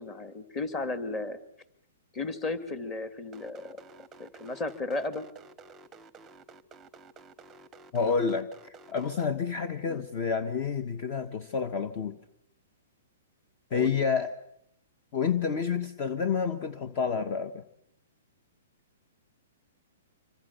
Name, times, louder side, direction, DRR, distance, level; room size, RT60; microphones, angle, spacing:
voice 1, 0.0-1.4 2.1-3.8 4.2-5.3 9.9-10.0 13.7-14.0, left 2 dB, 20° left, 10 dB, 2.2 m, -34 dB
sound 1, 3.3-9.3, right 4 dB, 15° right, 0.9 m, -51 dB
voice 2, 7.9-12.2 13.7-14.3 15.1-17.6, left 6 dB, 35° left, 11 dB, 1.3 m, -29 dB
27.0 x 24.5 x 7.0 m, 0.75 s
hypercardioid pair, 155°, 0 cm